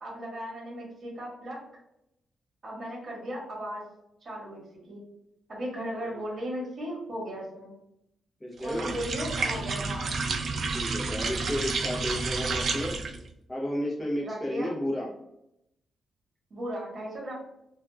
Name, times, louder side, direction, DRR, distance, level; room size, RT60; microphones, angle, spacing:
voice 1, 0.0-1.6 2.6-3.8 4.2-4.6 4.9-5.0 5.5-7.8 8.6-10.1 14.2-14.8 16.5-17.3, equal, 35° right, -4 dB, 1.1 m, -36 dB
voice 2, 8.4-8.9 10.7-12.9 13.5-15.1, equal, 15° left, -5 dB, 0.7 m, -32 dB
sound 1, 8.6-13.3, right 4 dB, 50° right, 0.3 m, -30 dB
2.9 x 2.3 x 2.2 m, 0.82 s
wide cardioid pair, 160°, 0 cm